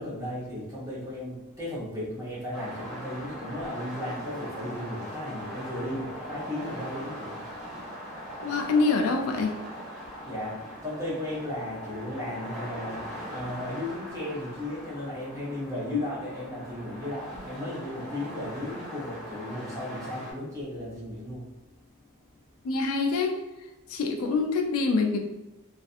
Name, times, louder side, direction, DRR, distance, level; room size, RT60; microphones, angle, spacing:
voice 1, 0.0-7.9 8.3-8.4 10.2-22.0 22.6-22.7, left 1 dB, 15° right, -9 dB, 0.7 m, -36 dB
sound 1, 2.5-20.3, equal, ahead, 1.0 m, -40 dB
voice 2, 8.4-9.5 15.9-16.0 22.6-23.4 23.9-25.2, left 4 dB, 75° left, 3 dB, 0.3 m, -25 dB
2.5 x 2.4 x 2.4 m, 1.0 s
head